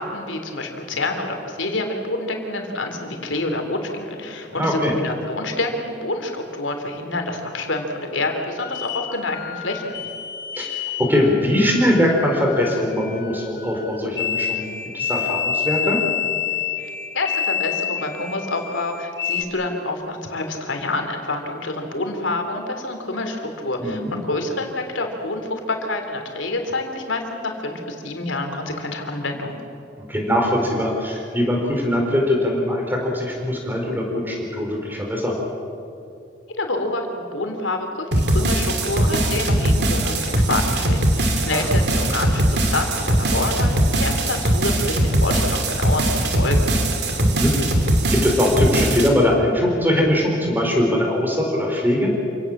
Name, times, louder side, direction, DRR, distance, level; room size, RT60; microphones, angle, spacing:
voice 1, 0.0-10.0 16.8-29.6 36.6-46.7, left 2 dB, 85° left, 4 dB, 3.4 m, -27 dB
voice 2, 4.6-4.9 10.5-14.7 14.9-16.0 23.8-24.2 30.1-35.4 41.5-41.7 47.2-47.5 48.1-52.2, left 1 dB, 10° right, 0 dB, 4.2 m, -21 dB
sound 1, 8.6-19.4, left 9 dB, 55° left, 1.3 m, -28 dB
sound 2, 38.1-49.1, right 1 dB, 60° right, 2.7 m, -20 dB
28.0 x 17.5 x 7.5 m, 2.7 s
head